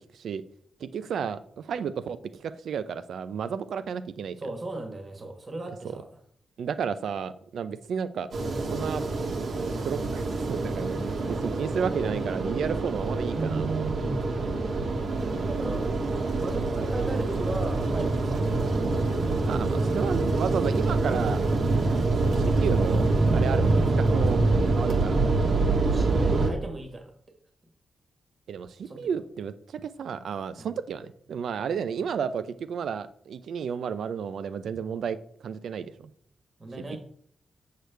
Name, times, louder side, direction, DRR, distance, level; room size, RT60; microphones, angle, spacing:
voice 1, 0.8-4.4 5.8-5.9 6.6-8.3 8.6-9.0 9.8-13.9 19.5-21.4 22.2-23.1 23.3-24.4 24.8-25.2 28.5-35.2 35.4-36.1 36.9-37.0, right 7 dB, 90° right, 13 dB, 0.5 m, -32 dB
voice 2, 4.4-6.1 12.0-12.4 15.2-18.9 20.7-21.0 25.9-27.1 28.8-29.1 30.5-30.7 36.6-37.0, right 2 dB, 30° right, 4 dB, 1.2 m, -38 dB
sound 1, 8.3-26.5, right 3 dB, 60° right, 1.1 m, -25 dB
7.9 x 6.6 x 3.4 m, 0.62 s
wide cardioid pair, 175°, 0 cm